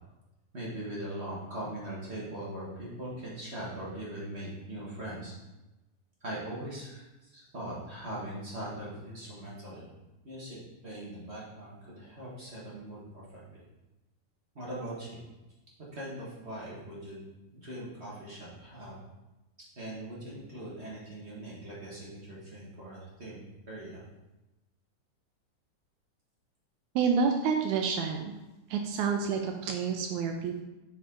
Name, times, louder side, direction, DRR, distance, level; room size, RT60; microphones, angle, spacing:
voice 1, 0.5-5.3 6.2-7.0 7.3-9.8 10.2-10.6 10.8-13.6 14.5-15.2 15.9-17.2 17.5-19.0 19.8-24.0, right 1 dB, 40° right, -6 dB, 0.9 m, -41 dB
voice 2, 27.0-28.3 28.7-30.6, right 5 dB, 80° right, 4 dB, 1.9 m, -28 dB
7.6 x 5.6 x 3.7 m, 1.0 s
omnidirectional pair, 3.6 m